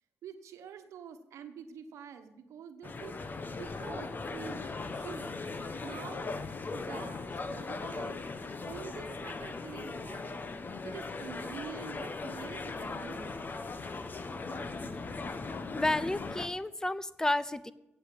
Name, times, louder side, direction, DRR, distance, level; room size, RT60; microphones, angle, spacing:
voice 1, 0.2-3.2 3.6-4.6 5.0-5.4 5.8-6.3 6.7-8.2 8.7-10.5 10.8-13.4, right 7 dB, 85° right, 8 dB, 1.2 m, -46 dB
sound 1, 2.8-16.5, left 3 dB, 40° left, 1.1 m, -39 dB
voice 2, 15.7-17.7, left 1 dB, 10° left, 15 dB, 0.6 m, -31 dB
8.3 x 8.1 x 8.3 m, 0.93 s
cardioid pair, 80°, 5 cm